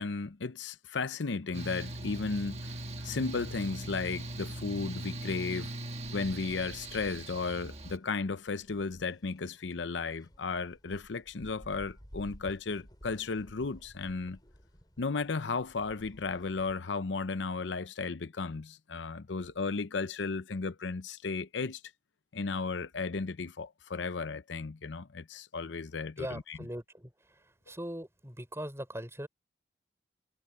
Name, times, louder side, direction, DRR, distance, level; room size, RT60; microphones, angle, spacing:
voice 1, 0.0-5.7 6.1-14.4 15.0-21.8 22.3-26.6, left 4 dB, 85° left, 0.7 m, -34 dB
Mechanical fan, 1.5-8.0, right 1 dB, 35° right, 1.4 m, -40 dB
sound 1, 4.7-16.8, equal, 20° left, 5.5 m, -55 dB
voice 2, 26.2-29.3, equal, 15° right, 5.6 m, -41 dB
head